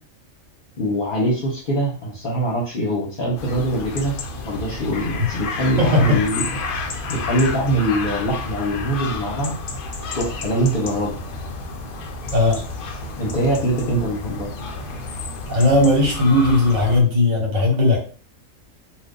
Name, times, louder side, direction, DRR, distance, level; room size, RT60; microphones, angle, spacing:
voice 1, 0.8-4.1 4.4-6.4 7.1-9.5 10.1-11.2 13.2-14.5, right 1 dB, 45° left, -4 dB, 0.9 m, -23 dB
sound 1, 3.4-17.0, left 3 dB, 65° left, 0.5 m, -30 dB
voice 2, 5.8-6.2 12.3-12.6 15.5-18.0, left 2 dB, 75° right, -1 dB, 1.5 m, -17 dB
2.5 x 2.5 x 3.6 m, 0.40 s
omnidirectional pair, 1.4 m